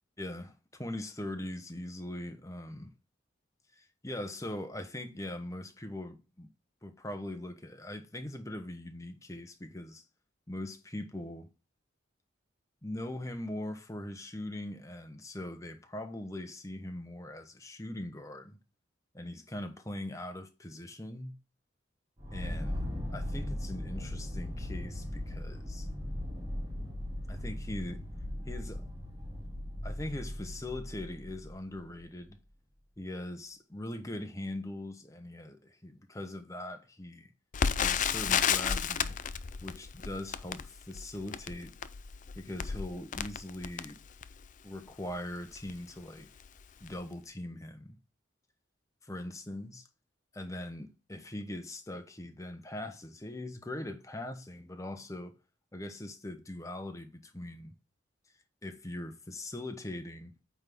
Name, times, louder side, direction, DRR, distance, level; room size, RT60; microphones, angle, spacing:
voice 1, 0.2-2.9 3.8-6.5 6.8-10.0 10.5-11.5 12.8-18.6 19.1-21.3 22.3-22.8 23.1-25.9 27.3-28.0 28.5-28.8 29.8-32.4 33.0-37.3 37.8-39.2 39.6-41.7 42.4-44.0 44.6-46.3 46.8-48.0 49.0-49.8 50.4-55.4 55.7-57.7 58.6-60.3, left 1 dB, 15° left, 1.0 m, -41 dB
sound 1, 22.2-31.8, left 1 dB, 20° right, 3.3 m, -38 dB
Crackle, 37.5-44.5 45.1-45.2 45.5-45.8 46.4-46.6 46.9-47.0, left 7 dB, 40° left, 0.5 m, -32 dB
8.8 x 3.6 x 6.0 m
head